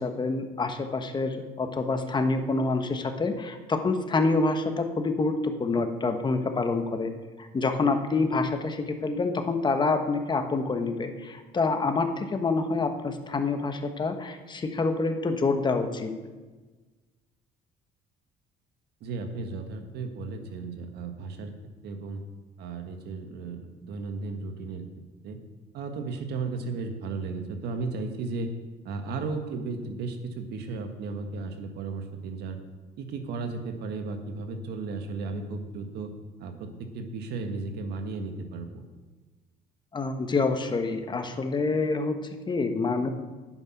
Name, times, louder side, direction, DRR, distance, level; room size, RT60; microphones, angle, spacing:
voice 1, 0.0-7.1 7.4-16.1 39.9-43.1, left 3 dB, 25° left, 6 dB, 1.2 m, -27 dB
voice 2, 19.0-21.5 21.8-22.2 22.6-24.9 25.2-25.4 25.7-28.5 28.8-32.6 33.0-36.1 36.4-38.9, right 3 dB, 75° right, 6 dB, 1.5 m, -35 dB
10.5 x 8.8 x 5.9 m, 1.3 s
cardioid pair, 110°, 17 cm